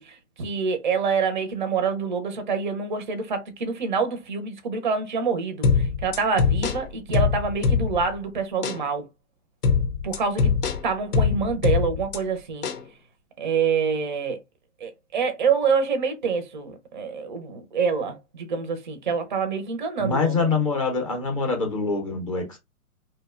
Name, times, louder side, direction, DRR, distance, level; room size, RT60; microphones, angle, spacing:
voice 1, 0.0-9.0 10.0-10.5 10.8-12.7 13.4-14.4 14.8-20.5, right 5 dB, 35° right, 0.4 m, -26 dB
sound 1, 5.6-8.2 8.6-8.8 9.6-12.2 12.6-12.8, left 5 dB, 80° left, 0.7 m, -23 dB
voice 2, 20.0-22.6, left 4 dB, 25° left, 0.5 m, -25 dB
2.7 x 2.0 x 2.3 m
hypercardioid pair, 145°, 46 cm